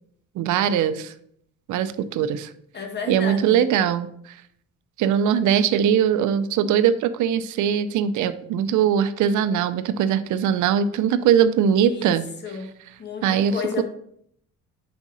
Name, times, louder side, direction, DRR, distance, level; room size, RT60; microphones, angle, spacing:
voice 1, 0.4-1.1 1.7-2.5 3.1-4.3 5.0-12.2 13.2-13.8, right 8 dB, 75° right, 12 dB, 0.5 m, -21 dB
voice 2, 2.7-3.6 11.8-12.1 12.4-13.8, left 5 dB, 35° left, 2 dB, 1.3 m, -32 dB
5.1 x 3.6 x 5.4 m, 0.68 s
cardioid pair, 90°, 30 cm